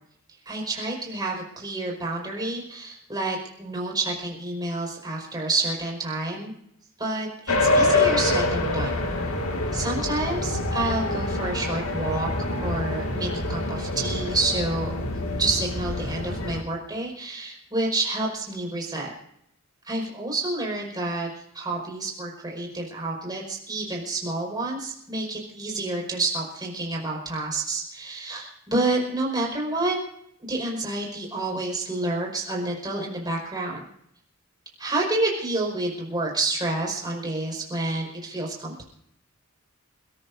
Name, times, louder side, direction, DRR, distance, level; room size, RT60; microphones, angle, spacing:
voice 1, 0.4-6.5 7.0-9.1 9.7-15.0 15.4-19.1 19.9-30.0 30.4-33.8 34.8-38.8, right 2 dB, 20° right, -2 dB, 5.0 m, -29 dB
sound 1, 7.5-16.6, left 2 dB, 80° left, 2.1 m, -26 dB
29.0 x 14.0 x 2.7 m, 0.74 s
head